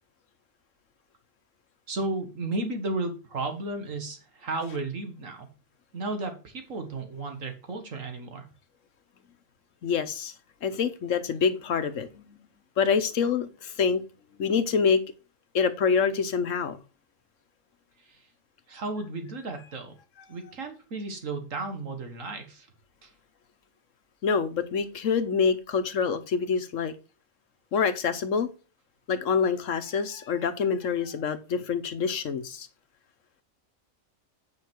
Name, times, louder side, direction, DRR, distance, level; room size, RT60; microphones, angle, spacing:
voice 1, 1.9-5.5 5.9-8.5 18.0-18.2 18.7-19.9 20.3-22.7 23.0-23.1, right 2 dB, 75° right, 6 dB, 1.9 m, -34 dB
voice 2, 9.8-10.3 10.6-12.4 12.8-14.0 14.4-15.0 15.5-16.8 24.2-26.9 27.7-28.5 29.1-32.7, left 6 dB, 75° left, 11 dB, 1.4 m, -26 dB
8.9 x 5.6 x 4.6 m, 0.33 s
omnidirectional pair, 1.3 m